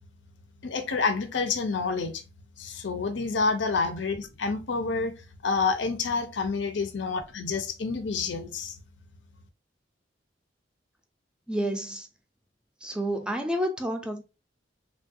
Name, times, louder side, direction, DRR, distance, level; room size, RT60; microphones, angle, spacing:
voice 1, 0.6-2.2 2.6-5.1 5.4-8.8, left 4 dB, 85° left, 0.6 m, -28 dB
voice 2, 11.5-12.1 12.8-14.2, equal, 5° right, 0.4 m, -29 dB
3.2 x 2.3 x 2.6 m
head